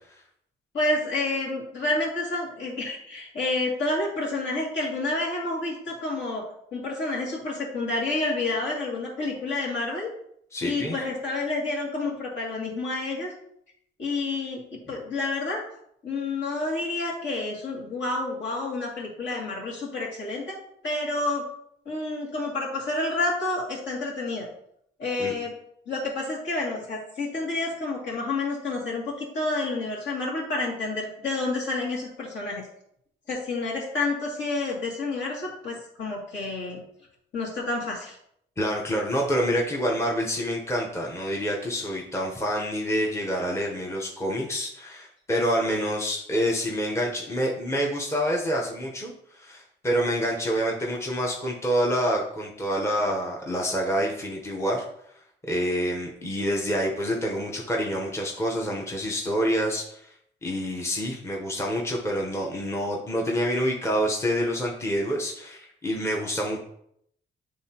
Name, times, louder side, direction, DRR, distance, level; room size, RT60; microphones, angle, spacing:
voice 1, 0.7-6.4 6.7-10.1 10.6-13.3 14.0-15.6 16.0-20.5 20.8-21.5 21.9-24.5 25.0-25.5 25.9-32.7 33.3-36.8 37.3-38.2, left 2 dB, 65° left, -4 dB, 2.4 m, -29 dB
voice 2, 10.5-11.0 25.2-25.3 38.6-54.9 55.5-60.1 60.4-66.6, equal, 15° left, -1 dB, 0.9 m, -27 dB
9.6 x 3.7 x 2.9 m, 0.72 s
cardioid pair, 145°, 20 cm